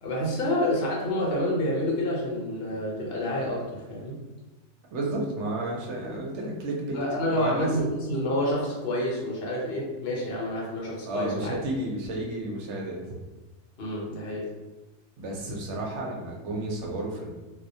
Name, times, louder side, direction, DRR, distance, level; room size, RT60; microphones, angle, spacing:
voice 1, 0.0-4.2 6.9-11.5 13.8-14.5, left 1 dB, 55° left, -3 dB, 0.8 m, -28 dB
voice 2, 4.9-7.0 7.3-7.7 11.0-13.0 15.2-17.3, right 1 dB, 65° right, -1 dB, 0.8 m, -32 dB
2.3 x 2.1 x 2.6 m, 1.1 s
omnidirectional pair, 1.4 m